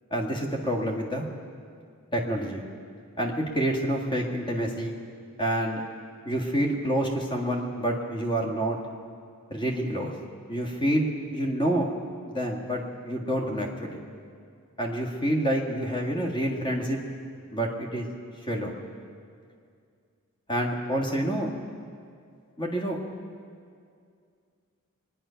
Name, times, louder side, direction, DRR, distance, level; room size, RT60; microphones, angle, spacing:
voice 1, 0.1-1.2 2.1-2.6 3.2-5.0 5.4-5.8 6.2-8.8 9.5-10.1 10.5-11.9 12.2-14.0 14.8-17.0 17.5-18.1 18.4-18.8 20.5-21.5 22.6-23.0, right 1 dB, 20° left, 0 dB, 1.8 m, -28 dB
23.0 x 10.0 x 5.7 m, 2.3 s
head